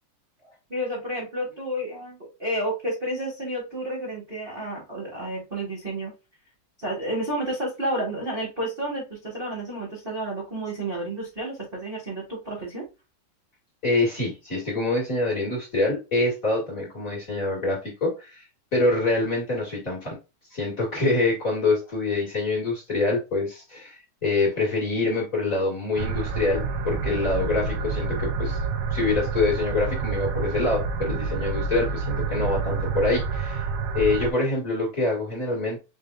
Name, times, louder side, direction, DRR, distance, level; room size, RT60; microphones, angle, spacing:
voice 1, 0.7-6.1 6.8-12.8, right 1 dB, 60° right, -4 dB, 0.5 m, -31 dB
voice 2, 13.8-18.4 18.7-20.2 20.5-28.6 28.9-33.7 33.9-35.8, left 2 dB, 40° left, -4 dB, 1.3 m, -25 dB
sound 1, 26.0-34.3, right 4 dB, 75° right, 1.5 m, -28 dB
5.2 x 3.3 x 2.3 m, 0.27 s
omnidirectional pair, 3.6 m